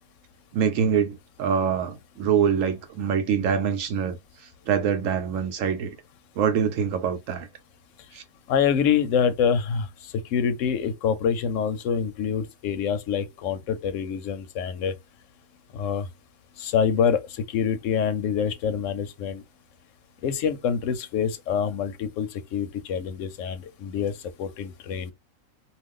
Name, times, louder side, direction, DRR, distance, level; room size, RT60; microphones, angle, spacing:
voice 1, 0.5-4.2 4.7-5.9 6.4-7.5 8.1-8.2, right 7 dB, 75° right, 0.9 m, -24 dB
voice 2, 8.5-9.9 10.3-14.9 15.7-16.1 16.6-17.2 17.5-19.4 20.2-24.1 24.4-25.1, left 7 dB, 70° left, 0.9 m, -26 dB
2.4 x 2.4 x 3.5 m
omnidirectional pair, 1.4 m